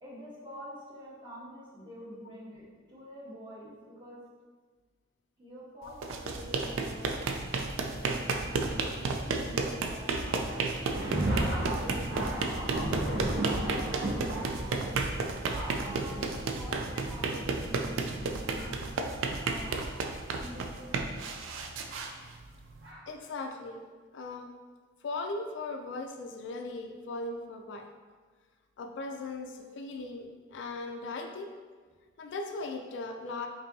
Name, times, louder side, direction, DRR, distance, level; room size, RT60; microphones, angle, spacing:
voice 1, 0.0-4.2 5.4-7.2 7.8-10.6 11.3-15.1 15.8-18.8 19.4-19.7 20.4-21.0, equal, 25° right, -8 dB, 1.0 m, -46 dB
sound 1, 5.9-22.9, right 3 dB, 80° right, 0.4 m, -33 dB
Thunder, 10.1-20.0 20.8-20.9 21.9-22.1 22.8-23.0, right 1 dB, 55° right, 1.0 m, -35 dB
voice 2, 16.7-17.1 23.1-23.8 24.1-24.5 25.0-27.9 28.8-31.5 32.2-33.5, left 3 dB, 65° left, 4 dB, 0.3 m, -38 dB
5.2 x 2.7 x 2.7 m, 1.5 s
head